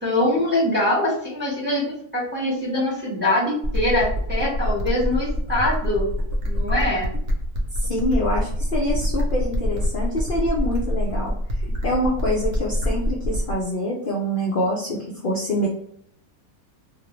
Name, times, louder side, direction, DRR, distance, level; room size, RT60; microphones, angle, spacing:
voice 1, 0.0-6.1 6.4-7.1, left 1 dB, 10° right, -6 dB, 0.8 m, -23 dB
sound 1, 3.6-13.6, equal, 70° right, 1.0 m, -25 dB
voice 2, 7.8-11.3 11.8-15.7, equal, 75° left, -4 dB, 0.4 m, -25 dB
2.5 x 2.0 x 2.9 m, 0.66 s
omnidirectional pair, 1.5 m